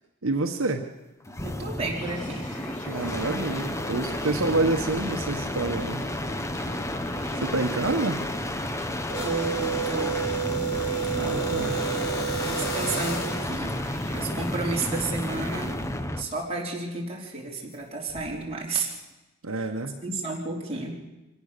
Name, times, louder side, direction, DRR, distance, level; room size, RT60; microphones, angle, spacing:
voice 1, 0.2-0.8 2.8-6.0 7.4-8.2 11.1-11.8 19.4-20.0, right 2 dB, 75° right, 4 dB, 1.2 m, -27 dB
sound 1, 1.3-16.3 18.1-18.5, left 1 dB, 15° left, 1.0 m, -31 dB
voice 2, 1.4-2.4 9.2-10.3 12.4-13.8 14.1-15.7 16.2-18.9 19.5-19.7 20.0-21.0, right 3 dB, 30° right, -2 dB, 4.0 m, -32 dB
sound 2, 1.8-15.7, left 1 dB, 40° left, 4.4 m, -47 dB
sound 3, 9.1-13.5, right 6 dB, 90° left, 4.6 m, -30 dB
25.0 x 17.0 x 6.8 m, 1.1 s
head